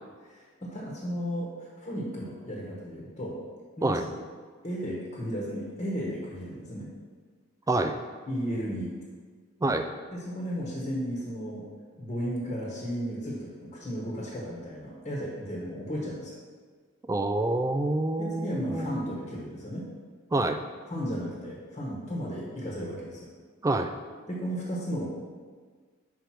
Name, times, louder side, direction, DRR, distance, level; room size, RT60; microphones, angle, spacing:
voice 1, 0.2-3.4 3.8-4.2 4.6-6.9 8.3-8.9 10.1-11.7 12.0-16.3 18.2-19.9 20.9-23.3 24.3-25.0, equal, 30° left, -4 dB, 1.2 m, -34 dB
voice 2, 17.1-19.0 20.3-20.6 23.6-23.9, right 2 dB, 15° right, 7 dB, 0.3 m, -27 dB
5.1 x 4.7 x 5.8 m, 1.5 s
head